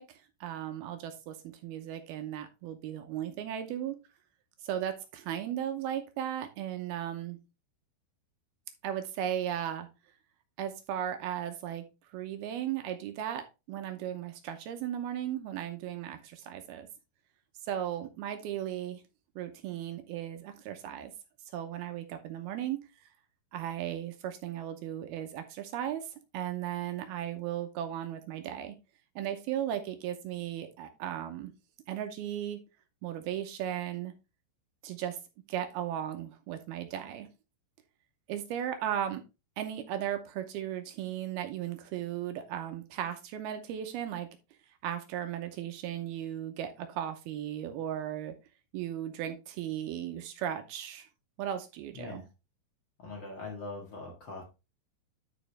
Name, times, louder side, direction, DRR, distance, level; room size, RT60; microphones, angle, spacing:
voice 1, 0.0-4.0 4.6-7.4 8.8-9.9 10.6-11.9 12.1-16.9 17.6-19.0 19.4-21.1 21.5-22.8 23.5-28.8 29.2-31.5 31.9-32.6 33.0-34.1 34.8-35.2 35.5-37.3 38.3-39.2 39.6-44.3 44.8-48.3 48.7-51.1 51.4-52.2, right 10 dB, 75° right, 6 dB, 2.4 m, -36 dB
voice 2, 51.9-52.3 53.0-54.4, left 3 dB, 85° left, 0 dB, 1.0 m, -42 dB
11.0 x 5.1 x 3.3 m, 0.27 s
omnidirectional pair, 5.2 m